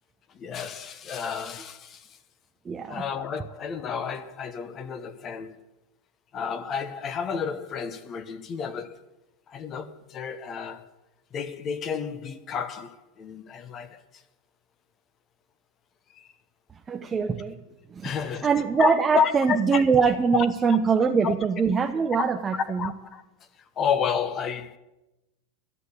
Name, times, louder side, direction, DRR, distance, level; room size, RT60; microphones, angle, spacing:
voice 1, 0.3-2.2 2.9-5.6 6.3-9.0 9.5-10.8 11.3-14.0 16.1-16.3 18.0-18.5 18.8-19.8 20.3-20.8 21.2-21.3 22.6-23.2 23.8-24.8, left 7 dB, 35° left, 1.1 m, -31 dB
voice 2, 2.7-3.0 16.9-17.6 17.9-18.1 18.4-22.9, right 5 dB, 20° right, 0.7 m, -23 dB
12.5 x 6.4 x 9.8 m
hypercardioid pair, 115°, 0 cm